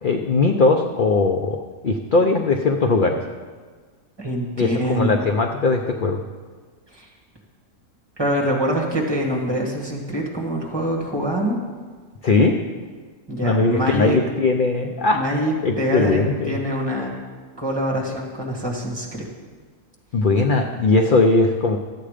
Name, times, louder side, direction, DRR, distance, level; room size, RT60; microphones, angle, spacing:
voice 1, 0.0-3.2 4.6-6.2 12.2-12.6 13.4-15.2 15.6-16.5 20.1-21.8, left 3 dB, 50° left, 3 dB, 0.6 m, -19 dB
voice 2, 4.2-5.3 6.9-7.1 8.2-11.6 13.3-14.2 15.1-17.1 17.6-19.3, equal, 15° right, -2 dB, 2.0 m, -24 dB
12.5 x 8.6 x 5.0 m, 1.5 s
omnidirectional pair, 1.5 m